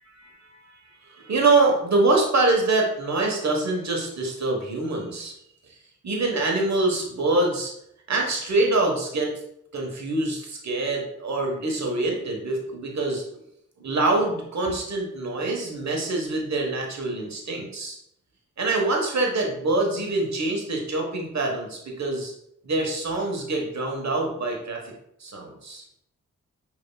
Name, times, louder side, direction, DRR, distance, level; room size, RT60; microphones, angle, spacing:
voice 1, 0.2-5.3 6.0-7.7 8.1-9.3 9.7-13.2 13.8-18.0 18.6-22.3 22.6-24.8 25.2-25.8, right 2 dB, 55° right, 0 dB, 1.2 m, -25 dB
5.2 x 3.0 x 2.2 m, 0.75 s
supercardioid pair, 40°, 33 cm